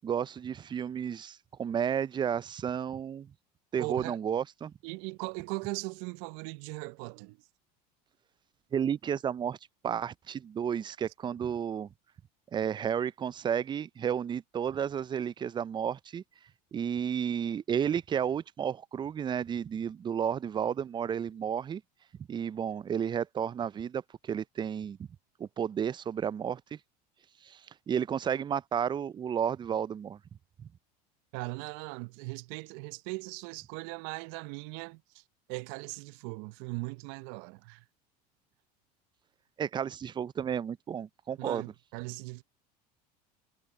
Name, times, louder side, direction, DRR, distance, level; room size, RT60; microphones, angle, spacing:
voice 1, 0.0-3.3 3.7-4.7 8.7-9.6 9.8-11.9 12.5-16.2 16.7-21.8 22.3-25.0 25.4-26.8 27.4-27.6 27.9-30.2 39.6-41.6, right 8 dB, 20° right, 0.4 m, -32 dB
voice 2, 3.8-4.2 4.8-7.4 31.3-35.2 35.5-37.8 41.4-42.4, right 27 dB, 65° right, 0.7 m, -39 dB
hypercardioid pair, 90°, 21 cm